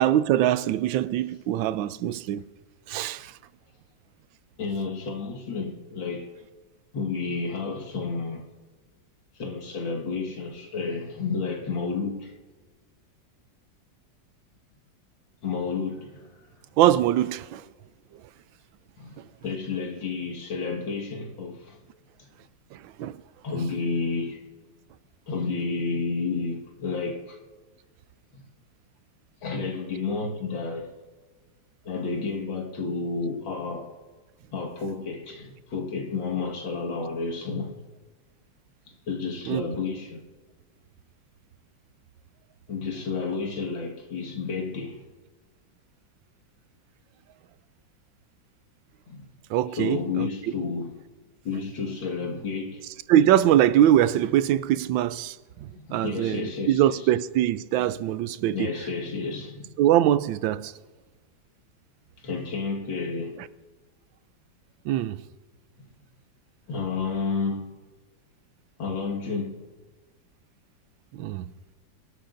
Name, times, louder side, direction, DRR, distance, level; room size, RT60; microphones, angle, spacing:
voice 1, 0.0-2.4 2.9-3.3 16.8-17.6 22.7-23.2 23.6-23.7 39.4-39.7 49.5-50.3 52.8-58.9 59.8-60.7 63.4-63.5 64.8-65.2 71.1-71.5, right 12 dB, 90° right, 1.3 m, -23 dB
voice 2, 4.6-6.3 6.9-8.4 9.4-12.3 15.4-16.4 19.0-21.8 23.4-24.4 25.3-27.4 28.3-28.4 29.4-30.9 31.8-33.9 34.5-37.8 39.1-40.2 42.7-45.0 49.1-49.2 49.8-50.9 51.4-52.8 55.7-57.1 58.5-59.7 62.2-63.4 65.8-65.9 66.7-67.6 68.8-69.6, left 4 dB, 90° left, 2.5 m, -31 dB
25.5 x 12.0 x 2.6 m
omnidirectional pair, 2.0 m